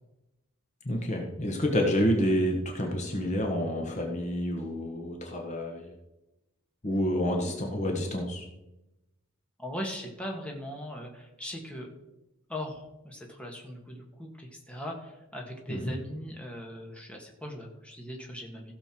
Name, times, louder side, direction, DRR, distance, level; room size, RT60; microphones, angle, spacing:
voice 1, 0.8-5.9 6.8-8.5 15.7-16.0, equal, 35° left, 1 dB, 1.3 m, -28 dB
voice 2, 9.6-11.9 12.5-18.7, equal, 5° left, 0 dB, 1.7 m, -39 dB
16.0 x 6.9 x 4.5 m, 0.95 s
head